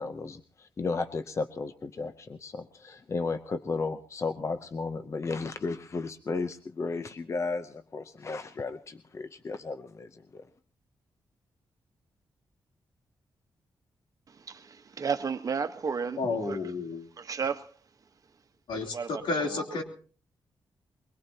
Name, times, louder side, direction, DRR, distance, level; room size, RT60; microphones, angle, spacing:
voice 1, 0.0-10.5, left 4 dB, 35° left, 0.7 m, -34 dB
voice 2, 14.3-16.6 17.2-17.8 18.9-19.8, right 6 dB, 45° right, 1.2 m, -33 dB
voice 3, 16.2-17.1 18.7-19.8, left 3 dB, 85° left, 3.3 m, -31 dB
23.0 x 20.5 x 2.9 m
wide cardioid pair, 120°, 8 cm